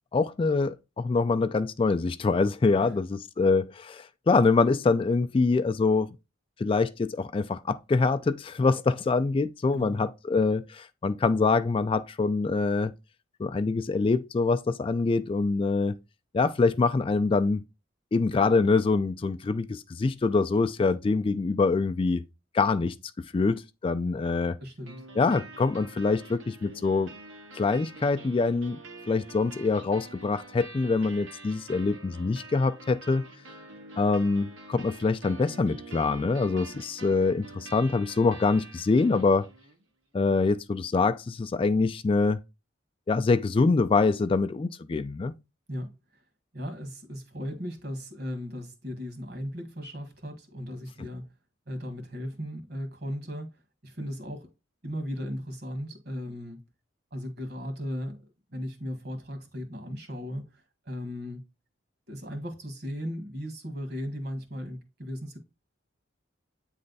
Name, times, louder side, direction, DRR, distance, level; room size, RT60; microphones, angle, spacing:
voice 1, 0.1-6.1 6.6-12.9 13.4-16.0 16.3-17.6 18.1-22.2 22.5-22.9 23.3-24.6 25.2-27.1 27.5-28.8 29.1-33.2 34.0-39.5 40.1-42.4 43.1-45.3, left 4 dB, 30° left, 0.3 m, -25 dB
voice 2, 24.6-25.4 45.7-45.9 46.5-51.2 51.7-54.5 54.8-56.6 57.1-58.2 58.5-61.4 62.1-65.4, equal, 55° right, 1.5 m, -37 dB
sound 1, 24.8-39.8, right 2 dB, 90° right, 1.6 m, -46 dB
8.6 x 3.3 x 4.0 m
head